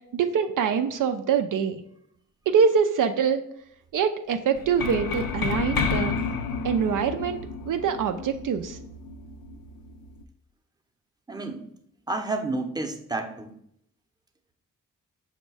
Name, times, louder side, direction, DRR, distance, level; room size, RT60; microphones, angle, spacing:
voice 1, 0.1-1.8 2.5-3.4 3.9-6.1 6.6-8.8, right 7 dB, 65° right, 7 dB, 0.4 m, -24 dB
sound 1, 4.6-10.2, left 5 dB, 75° left, 0.5 m, -31 dB
voice 2, 11.3-11.6 12.1-13.5, right 2 dB, 10° right, 5 dB, 0.7 m, -30 dB
5.2 x 2.2 x 4.7 m, 0.71 s
supercardioid pair, 45°, 34 cm